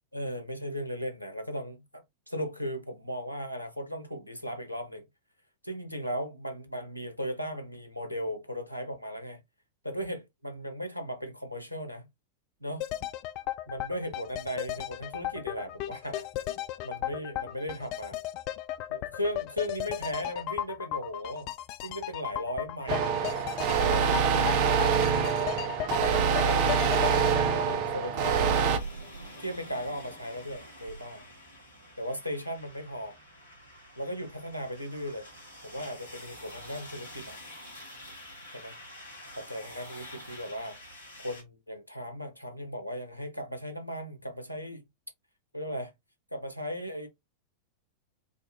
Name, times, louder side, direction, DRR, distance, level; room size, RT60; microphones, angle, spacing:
voice 1, 0.1-5.0 5.6-9.4 9.8-12.1 12.6-12.8 13.7-16.3 16.8-18.2 18.9-21.5 21.8-23.4 23.9-25.6 26.4-28.7 29.4-31.2 32.0-33.2 34.0-35.3 35.6-37.4 38.5-38.7 39.4-44.8 45.5-45.9 46.3-47.1, equal, 90° right, 0.8 m, -37 dB
sound 1, 12.8-28.7 29.0-29.1, left 14 dB, 45° left, 0.3 m, -36 dB
sound 2, 22.9-28.8, right 6 dB, 45° right, 0.7 m, -25 dB
sound 3, 28.3-41.4, equal, 80° left, 1.9 m, -47 dB
5.0 x 2.3 x 2.6 m
figure-of-eight pair, 90°, 0 cm